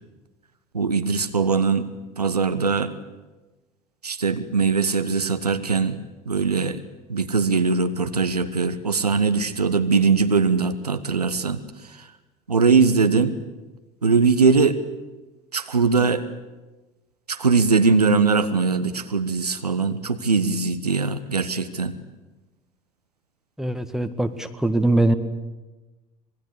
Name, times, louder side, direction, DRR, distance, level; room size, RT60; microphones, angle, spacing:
voice 1, 0.7-1.9 2.2-2.9 4.0-6.0 6.3-6.8 7.1-11.6 11.9-12.1 12.5-13.4 14.0-14.8 15.5-16.3 17.3-21.9, right 4 dB, 85° right, 10 dB, 1.1 m, -21 dB
voice 2, 23.6-25.1, right 2 dB, ahead, 8 dB, 1.8 m, -22 dB
26.0 x 20.5 x 8.3 m, 1.2 s
figure-of-eight pair, 65°, 20 cm